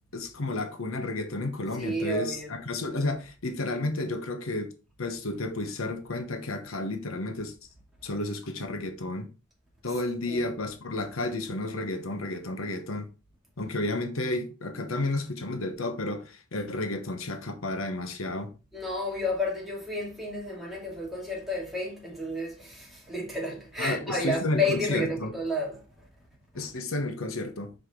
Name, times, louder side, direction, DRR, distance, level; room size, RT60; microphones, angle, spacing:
voice 1, 0.1-4.7 5.0-7.5 8.0-9.3 9.8-13.1 13.6-18.5 23.8-25.3 26.5-27.7, left 2 dB, 85° left, 1.1 m, -31 dB
voice 2, 1.8-2.5 10.3-10.5 18.7-25.8, left 1 dB, ahead, 2.5 m, -31 dB
6.5 x 4.9 x 3.8 m
head